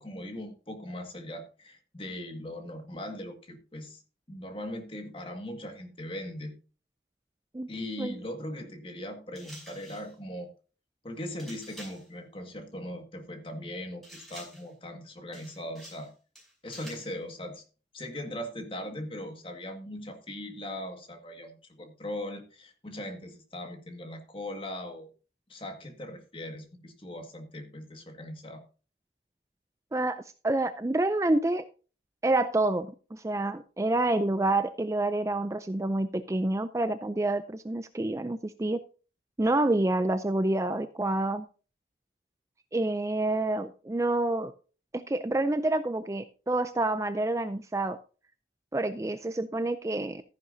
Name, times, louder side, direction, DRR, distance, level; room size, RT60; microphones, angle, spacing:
voice 1, 0.0-4.0 4.3-6.5 7.7-10.5 11.0-16.1 16.6-17.6 17.9-25.1 25.5-28.6, left 1 dB, 30° left, 5 dB, 1.9 m, -39 dB
sound 1, 9.3-10.1 11.4-12.1 14.0-14.7 15.3-16.1 16.3-17.1, right 1 dB, ahead, 5.5 m, -48 dB
voice 2, 29.9-31.6 32.2-38.8 39.4-41.5 42.7-44.5 44.9-48.0 48.7-50.2, right 2 dB, 15° right, 11 dB, 0.4 m, -28 dB
14.0 x 10.5 x 2.7 m, 0.35 s
head